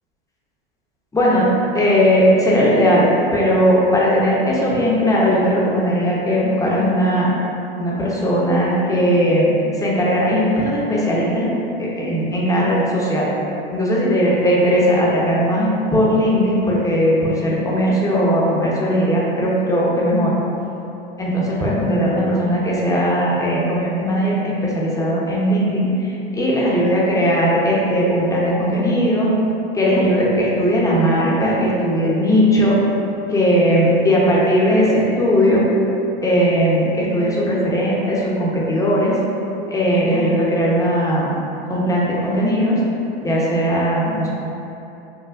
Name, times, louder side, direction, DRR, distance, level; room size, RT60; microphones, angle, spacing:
voice 1, 1.1-1.5 1.7-3.0 3.3-7.3 7.8-9.5 9.8-11.5 11.8-13.3 13.7-20.3 21.2-29.3 29.7-32.8 33.3-35.7 36.2-39.2 39.7-41.3 41.7-42.8 43.2-44.3, equal, 10° left, -5 dB, 0.7 m, -18 dB
5.7 x 2.2 x 2.4 m, 2.9 s
hypercardioid pair, 110°, 30 cm